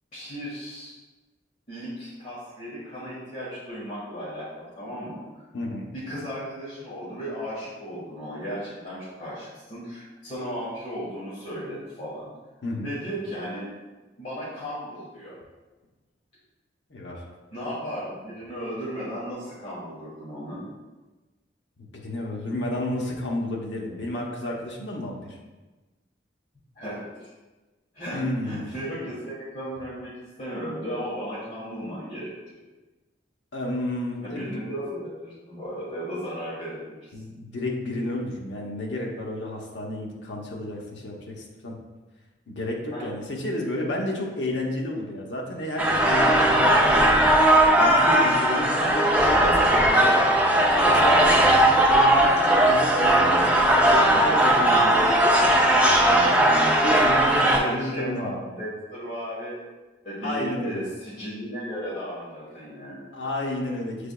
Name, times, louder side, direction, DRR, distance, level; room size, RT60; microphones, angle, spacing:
voice 1, 0.1-1.0 1.7-5.2 5.9-12.3 12.8-13.7 14.2-15.3 17.5-20.6 26.7-27.3 27.9-28.2 28.4-32.3 34.2-37.1 42.9-43.1 48.3-48.8 56.1-56.5 57.3-59.6 60.0-63.0, equal, 40° left, -10 dB, 1.2 m, -35 dB
voice 2, 5.5-5.9 12.6-12.9 16.9-17.2 22.0-25.4 28.1-28.7 33.5-34.6 37.1-41.7 42.5-47.4 47.8-50.3 50.6-55.1 56.8-58.4 60.2-60.8 63.1-64.1, left 1 dB, 75° left, -1 dB, 0.7 m, -31 dB
sound 1, 45.8-57.6, right 1 dB, 5° right, 0.4 m, -18 dB
6.6 x 3.4 x 2.2 m, 1.2 s
head